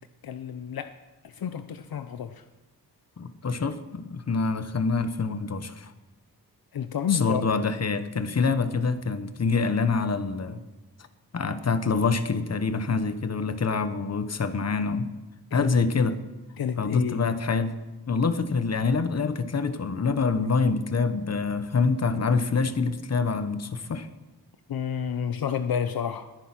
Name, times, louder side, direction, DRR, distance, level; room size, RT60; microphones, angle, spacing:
voice 1, 0.2-0.9 1.2-2.4 6.7-7.4 15.5-15.7 16.6-17.2 24.7-26.2, left 8 dB, 65° left, 9 dB, 0.7 m, -30 dB
voice 2, 3.2-5.9 7.1-10.6 11.3-15.1 15.5-16.2 16.8-17.8 18.1-24.1, left 4 dB, 40° left, 11 dB, 1.1 m, -26 dB
20.5 x 10.0 x 6.1 m, 1.2 s
wide cardioid pair, 125°, 38 cm